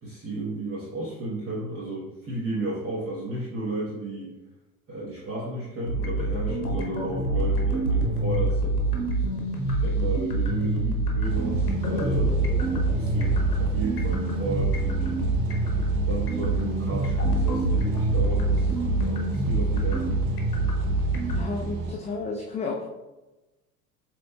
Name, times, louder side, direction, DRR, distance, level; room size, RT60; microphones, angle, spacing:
voice 1, 0.0-4.3 4.9-9.2 9.7-12.3 12.9-15.3 15.9-20.2, right 2 dB, 30° right, -7 dB, 1.1 m, -33 dB
sound 1, 5.9-21.4, right 2 dB, 85° left, 0.9 m, -25 dB
sound 2, 11.2-21.9, right 4 dB, 60° right, 0.8 m, -32 dB
voice 2, 21.3-22.8, left 4 dB, 15° left, -1 dB, 0.4 m, -32 dB
7.5 x 2.9 x 2.2 m, 1.1 s
figure-of-eight pair, 70°, 45 cm